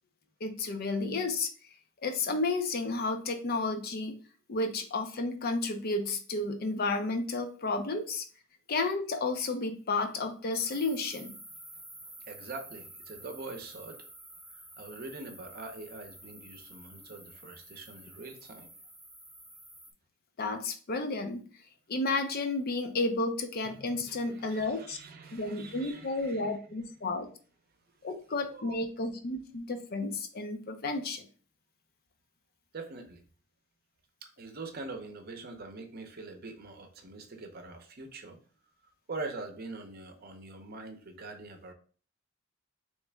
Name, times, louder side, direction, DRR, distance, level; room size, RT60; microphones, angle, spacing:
voice 1, 0.4-1.5 2.0-4.2 4.5-8.3 8.7-11.3 20.4-21.4 21.9-25.0 25.3-27.3 28.0-31.2, left 3 dB, 50° left, 6 dB, 0.5 m, -32 dB
sound 1, 10.5-19.9, right 1 dB, ahead, 0.5 m, -50 dB
voice 2, 12.2-14.0 14.5-18.7 24.0-26.6 28.5-28.8 32.7-33.2 34.2-38.4 38.8-41.7, right 3 dB, 50° right, 5 dB, 0.7 m, -44 dB
3.3 x 3.1 x 3.3 m, 0.41 s
head